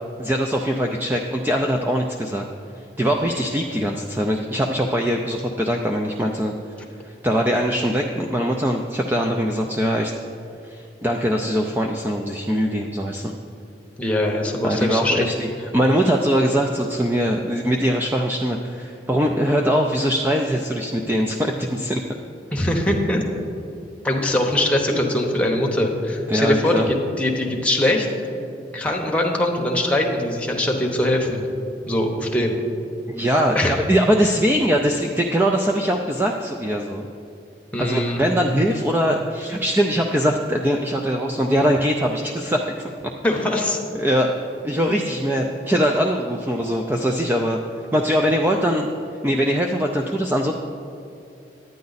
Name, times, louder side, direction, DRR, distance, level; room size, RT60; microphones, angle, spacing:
voice 1, 0.2-2.4 3.0-6.5 7.0-10.1 10.6-13.3 14.6-22.0 26.3-26.9 33.1-37.1 37.8-42.6 43.9-44.3 44.6-47.6 47.9-48.9 49.2-50.5, equal, 10° right, 2 dB, 0.3 m, -22 dB
voice 2, 14.0-15.3 22.5-23.2 24.0-28.1 28.7-31.4 31.9-32.6 33.5-33.7 37.7-38.2 43.2-43.8 44.7-44.8, left 1 dB, 5° left, 0 dB, 0.9 m, -22 dB
10.5 x 9.4 x 4.0 m, 2.6 s
head